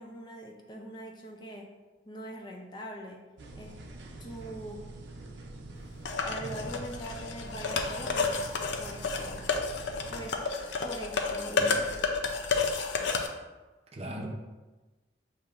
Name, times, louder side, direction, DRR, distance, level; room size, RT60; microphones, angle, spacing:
voice 1, 0.0-1.7 2.0-3.2 3.5-3.7 4.2-4.8 6.2-8.4 8.8-9.5 10.1-10.4 10.8-11.8 14.0-14.1, right 1 dB, 25° left, 1 dB, 0.5 m, -42 dB
sound 1, 3.4-10.3, right 2 dB, 85° right, 0.6 m, -45 dB
sound 2, 6.1-13.3, left 4 dB, 75° left, 0.5 m, -31 dB
voice 2, 6.4-6.8 11.6-11.8 13.9-14.3, right 1 dB, 35° right, 1 dB, 0.6 m, -39 dB
6.7 x 2.9 x 2.4 m, 1.2 s
head